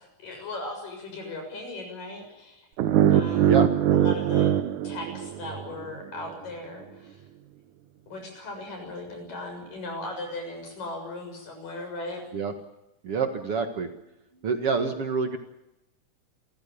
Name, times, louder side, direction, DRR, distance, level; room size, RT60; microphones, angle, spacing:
voice 1, 0.0-2.7 3.1-3.6 3.9-7.2 8.1-12.2, left 2 dB, 80° left, 3 dB, 8.6 m, -38 dB
sound 1, 2.8-5.9, right 10 dB, 70° right, 2.3 m, -22 dB
voice 2, 13.0-13.9 14.4-15.4, right 5 dB, 50° right, 7 dB, 2.3 m, -27 dB
28.5 x 15.0 x 8.6 m, 0.90 s
omnidirectional pair, 3.8 m